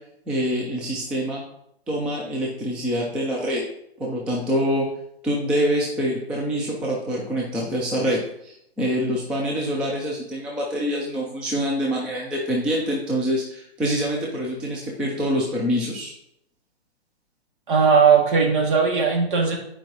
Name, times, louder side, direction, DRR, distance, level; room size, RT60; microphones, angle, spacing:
voice 1, 0.3-1.4 1.9-3.6 4.0-4.9 5.2-16.1, equal, 5° right, -3 dB, 0.4 m, -25 dB
voice 2, 17.7-19.6, right 5 dB, 50° right, 1 dB, 2.2 m, -18 dB
10.0 x 4.9 x 3.0 m, 0.77 s
hypercardioid pair, 135°, 32 cm